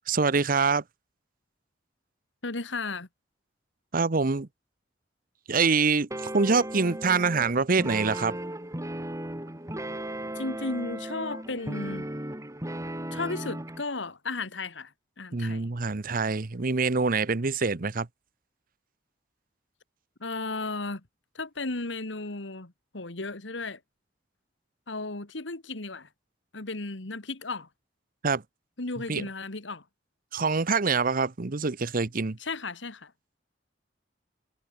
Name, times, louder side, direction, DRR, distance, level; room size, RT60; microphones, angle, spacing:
voice 1, 0.1-0.8 3.9-4.5 5.5-6.1 6.3-8.4 15.3-18.1 28.2-28.4 29.1-29.2 30.3-32.4, right 4 dB, 50° right, 0.9 m, -25 dB
voice 2, 2.4-3.1 10.4-12.1 13.1-14.9 15.2-15.7 20.2-21.0 21.3-23.8 24.9-26.1 26.5-27.7 28.8-29.8 32.4-33.1, left 3 dB, 90° left, 2.1 m, -34 dB
sound 1, 6.1-13.8, right 1 dB, 15° right, 3.1 m, -36 dB
head